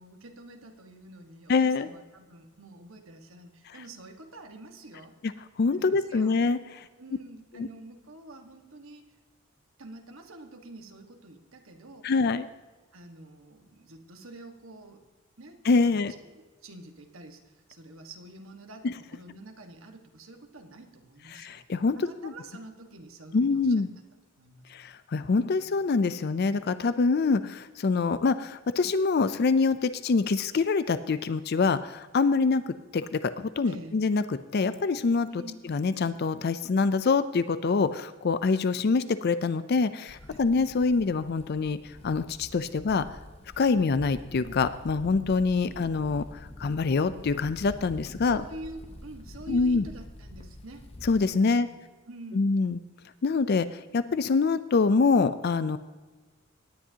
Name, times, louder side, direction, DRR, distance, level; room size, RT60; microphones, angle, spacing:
voice 1, 0.0-5.2 5.7-6.5 7.0-9.1 9.8-12.1 12.9-15.0 15.4-15.6 15.8-21.6 21.9-23.7 24.4-24.7 25.5-25.6 33.6-34.0 35.3-35.6 40.3-40.4 45.6-45.8 48.2-50.9 51.4-51.8 52.1-52.5, right 1 dB, 80° right, 4 dB, 1.5 m, -47 dB
voice 2, 1.5-1.9 5.2-5.3 5.6-6.9 7.5-7.7 12.0-12.5 15.7-16.1 18.8-18.9 21.3-22.0 22.2-22.3 23.3-23.9 24.7-35.3 35.7-43.1 43.6-48.4 49.5-49.9 51.0-51.7 52.3-52.8 53.2-55.8, left 4 dB, 50° left, 13 dB, 0.4 m, -25 dB
sound 1, 40.1-51.3, left 1 dB, 30° left, 0.8 m, -46 dB
18.0 x 10.0 x 2.8 m, 1.3 s
head